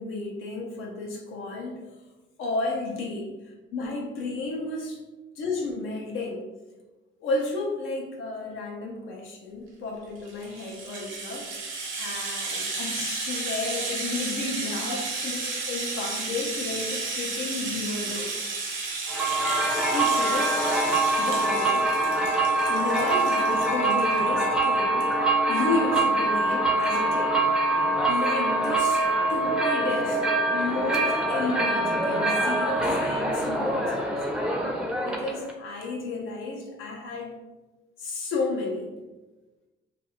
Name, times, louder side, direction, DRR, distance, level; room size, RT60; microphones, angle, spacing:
voice 1, 0.0-1.8 2.4-3.3 3.7-5.0 5.4-6.4 7.2-11.4 12.0-18.3 19.9-20.6 21.2-22.0 22.7-25.1 25.5-27.4 28.1-30.2 30.5-34.1 35.0-37.3 38.0-38.9, left 3 dB, 85° left, 0 dB, 0.6 m, -32 dB
Rattle (instrument), 10.2-24.3 24.6-24.7 25.0-25.1, right 3 dB, 75° right, 0.7 m, -33 dB
sound 1, 19.1-35.5, right 2 dB, 5° right, 0.4 m, -24 dB
2.5 x 2.4 x 2.9 m, 1.1 s
cardioid pair, 90°, 20 cm